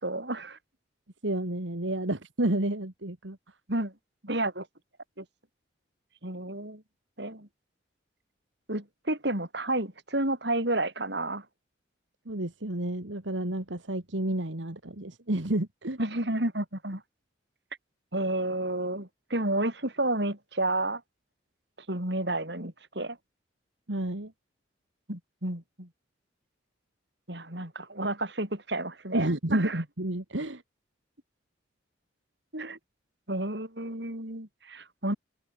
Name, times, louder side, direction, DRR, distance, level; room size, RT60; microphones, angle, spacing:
voice 1, 0.0-0.6 3.7-3.9 4.2-4.7 5.2-5.3 6.2-6.8 7.2-7.5 8.7-11.4 16.0-17.0 18.1-21.0 21.9-23.2 25.1-25.9 27.3-29.8 32.5-32.8 33.3-35.2, right 1 dB, 60° right, 6.8 m, -31 dB
voice 2, 1.2-3.4 12.3-16.0 23.9-24.3 29.1-30.6, right 1 dB, 80° right, 2.3 m, -30 dB
open air
head